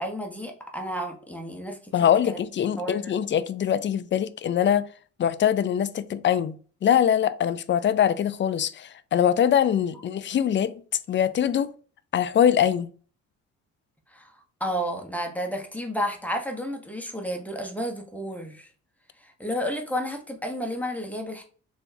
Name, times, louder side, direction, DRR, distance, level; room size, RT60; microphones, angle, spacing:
voice 1, 0.0-2.4 2.8-3.1 14.1-14.3 14.6-18.7 19.2-21.4, equal, 5° left, 1.0 m, -31 dB
voice 2, 1.9-4.9 5.2-10.7 11.1-11.7 12.1-12.9, left 9 dB, 40° left, 0.4 m, -23 dB
4.4 x 3.4 x 2.7 m
cardioid pair, 90°, 30 cm